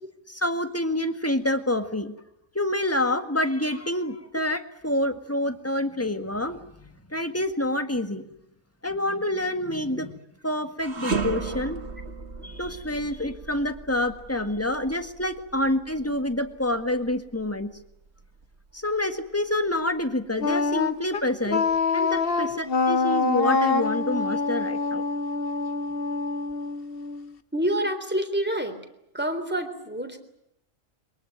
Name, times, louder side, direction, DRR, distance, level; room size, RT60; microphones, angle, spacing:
voice 1, 0.3-2.1 2.5-8.3 8.8-10.1 10.4-11.8 12.4-17.7 18.7-21.6 21.9-25.0, left 1 dB, 10° left, 8 dB, 1.8 m, -27 dB
sound 1, 10.8-20.0 20.5-20.6 21.5-22.4, right 4 dB, 50° right, 2.2 m, -36 dB
Wind instrument woodwind instrument, 20.4-27.3, left 4 dB, 45° left, 1.3 m, -25 dB
voice 2, 27.5-28.8 29.1-30.2, right 1 dB, 5° right, 6 dB, 3.6 m, -27 dB
23.5 x 22.5 x 9.3 m, 0.81 s
omnidirectional pair, 1.4 m